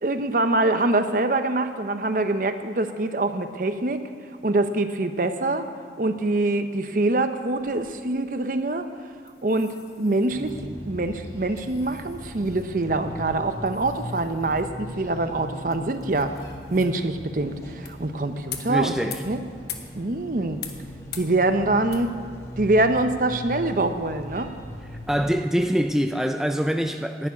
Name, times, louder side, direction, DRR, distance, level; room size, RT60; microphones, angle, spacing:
voice 1, 0.0-4.0 4.4-5.6 6.0-8.8 9.4-16.3 16.7-19.4 19.9-20.6 21.2-22.1 22.6-24.5, right 2 dB, 50° right, 0.7 m, -24 dB
sound 1, 7.4-24.3, left 9 dB, 65° left, 1.1 m, -46 dB
sound 2, 10.3-25.4, left 1 dB, 15° left, 1.2 m, -39 dB
voice 2, 18.7-19.2 25.1-27.3, equal, 5° right, 0.3 m, -24 dB
11.0 x 7.1 x 9.5 m
head